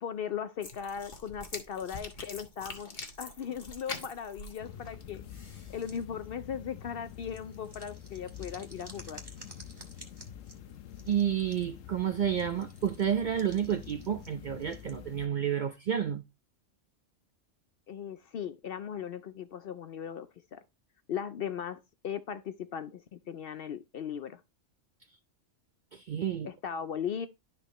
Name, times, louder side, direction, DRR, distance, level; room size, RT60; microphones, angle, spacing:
voice 1, 0.0-5.2 5.7-9.2 17.9-20.6 21.1-24.4 26.4-27.3, left 8 dB, 60° left, 0.6 m, -38 dB
sound 1, 0.6-6.0, left 3 dB, 40° left, 1.3 m, -45 dB
sound 2, 4.6-15.3, left 9 dB, 90° left, 1.1 m, -47 dB
sound 3, 5.8-6.3 6.8-11.8 12.4-14.9, right 1 dB, 20° right, 1.6 m, -53 dB
voice 2, 11.1-16.2 25.9-26.5, right 9 dB, 55° right, 0.5 m, -30 dB
11.5 x 4.4 x 3.0 m
omnidirectional pair, 1.3 m